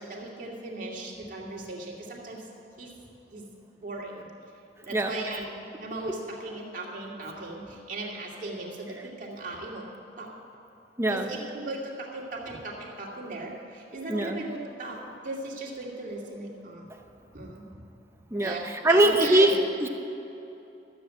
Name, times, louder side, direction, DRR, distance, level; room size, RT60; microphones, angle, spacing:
voice 1, 0.0-2.4 2.8-2.9 3.3-3.4 3.8-4.3 4.8-9.9 10.2-10.3 11.1-16.9 17.3-17.7 18.4-19.5, right 2 dB, 45° right, -3 dB, 2.3 m, -37 dB
voice 2, 11.0-11.3 14.1-14.4 18.3-18.6 18.8-19.9, right 1 dB, 15° right, 5 dB, 0.7 m, -22 dB
13.0 x 7.8 x 7.6 m, 2.9 s
head